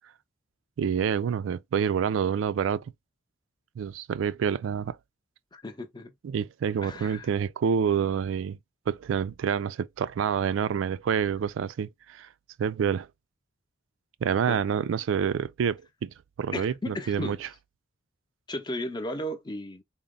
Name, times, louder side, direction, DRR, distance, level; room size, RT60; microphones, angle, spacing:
voice 1, 0.8-2.8 3.8-5.0 6.2-8.6 8.9-12.3 12.6-13.1 14.2-16.1 16.4-17.5, right 7 dB, 70° right, 0.3 m, -27 dB
voice 2, 5.5-6.1 6.8-7.3 14.5-14.6 16.5-17.4 18.5-19.8, left 1 dB, 20° left, 0.6 m, -35 dB
3.9 x 2.0 x 3.6 m
head